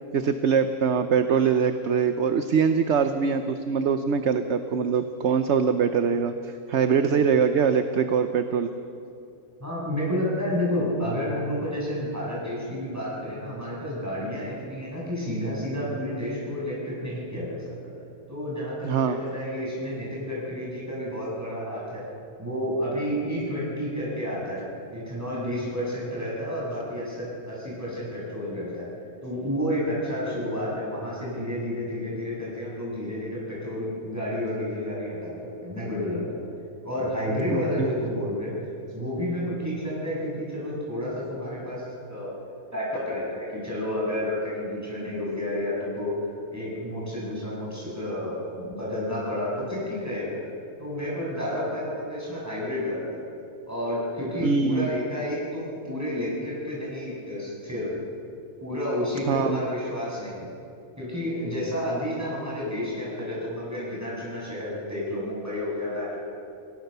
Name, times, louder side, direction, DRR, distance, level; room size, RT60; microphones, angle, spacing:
voice 1, 0.1-8.7 18.8-19.2 37.5-37.9 54.4-54.9 59.3-59.6, right 6 dB, 55° right, 9 dB, 1.0 m, -23 dB
voice 2, 9.6-17.6 18.3-22.0 22.4-28.9 29.2-36.4 36.8-38.5 38.9-42.3 42.7-46.1 46.5-50.4 50.8-53.2 53.7-58.0 58.6-60.5 61.0-66.2, left 1 dB, 10° right, -6 dB, 7.9 m, -30 dB
29.5 x 17.5 x 6.8 m, 2.7 s
omnidirectional pair, 1.6 m